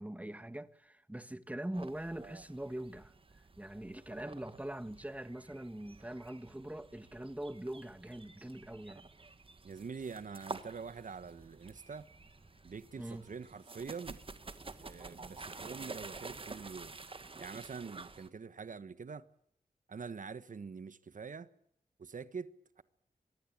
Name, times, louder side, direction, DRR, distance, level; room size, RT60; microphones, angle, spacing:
voice 1, 0.0-3.1 3.6-9.0 13.0-13.3, right 1 dB, 10° right, 1.4 m, -43 dB
sound 1, 1.7-18.3, right 3 dB, 35° right, 1.8 m, -50 dB
voice 2, 9.6-12.1 12.6-14.2 14.8-17.0 17.4-19.3 19.9-21.5 22.0-22.8, right 5 dB, 60° right, 1.3 m, -45 dB
sound 2, 10.7-16.8, left 3 dB, 35° left, 2.6 m, -72 dB
24.0 x 21.0 x 8.7 m
wide cardioid pair, 90°, 15 cm